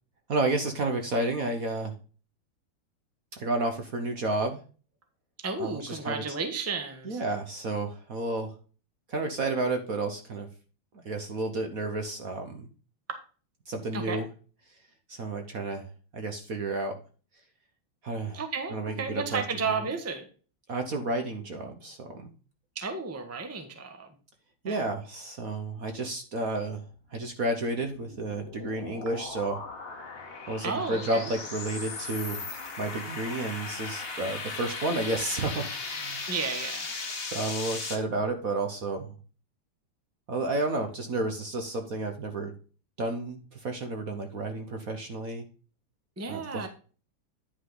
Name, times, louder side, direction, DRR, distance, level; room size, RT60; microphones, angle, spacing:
voice 1, 0.3-1.9 3.3-4.6 5.6-6.2 7.0-8.5 9.1-10.5 10.9-12.7 13.7-14.3 15.1-15.9 16.1-16.9 18.0-18.4 18.7-19.4 20.7-22.3 24.6-26.8 27.1-29.6 30.5-32.4 32.8-36.3 37.3-39.1 40.3-42.5 43.0-45.4 46.3-46.4, right 2 dB, 50° right, 5 dB, 1.2 m, -31 dB
voice 2, 5.4-7.2 13.9-14.2 18.3-20.3 22.7-24.2 24.6-24.8 30.6-31.3 36.3-36.9 46.2-46.7, right 4 dB, 10° right, 6 dB, 0.8 m, -33 dB
sound 1, 27.4-38.0, left 4 dB, 35° left, 1.3 m, -37 dB
9.9 x 5.6 x 3.9 m, 0.37 s
omnidirectional pair, 2.3 m